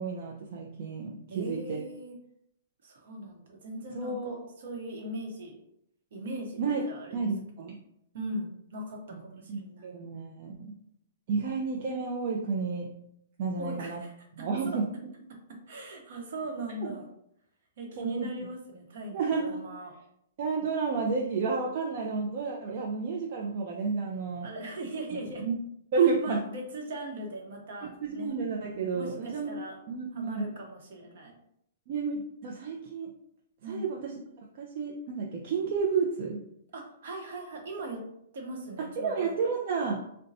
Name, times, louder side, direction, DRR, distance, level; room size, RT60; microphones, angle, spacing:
voice 1, 0.0-1.8 3.9-4.4 6.6-6.8 7.1-7.8 9.1-9.2 9.5-10.7 11.3-12.9 13.4-14.0 14.4-14.8 18.0-18.3 19.1-19.6 20.4-24.5 25.4-25.6 25.9-26.4 28.0-29.6 29.9-30.5 31.9-33.1 33.7-36.4 39.0-40.0, right 5 dB, 50° right, -1 dB, 0.4 m, -31 dB
voice 2, 1.3-2.2 2.8-5.6 6.1-6.6 6.9-7.2 8.1-10.0 13.6-14.3 14.6-14.8 15.7-17.1 17.8-19.9 24.4-25.4 26.2-28.3 28.9-29.8 30.1-31.4 33.6-33.9 36.7-38.0 38.3-39.4, right 1 dB, 65° right, 1 dB, 0.9 m, -39 dB
2.6 x 2.2 x 4.0 m, 0.74 s
hypercardioid pair, 145°, 0 cm